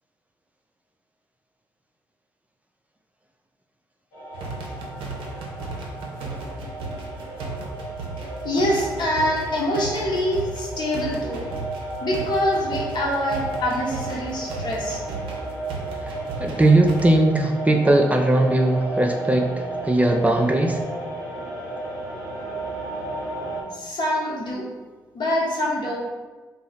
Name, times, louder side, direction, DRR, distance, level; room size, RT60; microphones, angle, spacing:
sound 1, 4.1-23.6, right 2 dB, 75° left, 0.9 m, -33 dB
sound 2, 4.3-17.0, right 3 dB, 65° right, 0.6 m, -35 dB
voice 1, 8.4-11.4 12.0-15.0 23.7-24.7 25.1-26.0, left 1 dB, 50° left, -3 dB, 0.9 m, -25 dB
voice 2, 16.4-19.5 19.8-20.8, right 1 dB, 15° right, 2 dB, 0.3 m, -19 dB
2.7 x 2.0 x 4.0 m, 1.3 s
hypercardioid pair, 45°, 9 cm